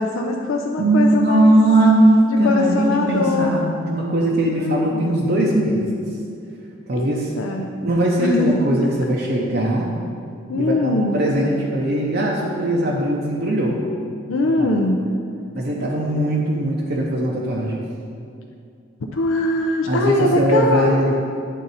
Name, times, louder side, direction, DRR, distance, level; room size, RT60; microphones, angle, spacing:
voice 1, 0.0-1.5 2.4-3.5 4.5-5.2 6.9-7.7 8.2-8.6 10.5-11.2 14.3-15.0 19.1-21.2, left 2 dB, 75° left, 2 dB, 0.4 m, -21 dB
voice 2, 0.8-5.9 6.9-7.3 7.8-9.9 10.5-13.8 14.6-14.7 15.5-17.8 19.9-21.2, right 1 dB, 50° right, -3 dB, 0.6 m, -19 dB
8.3 x 3.9 x 4.1 m, 2.4 s
head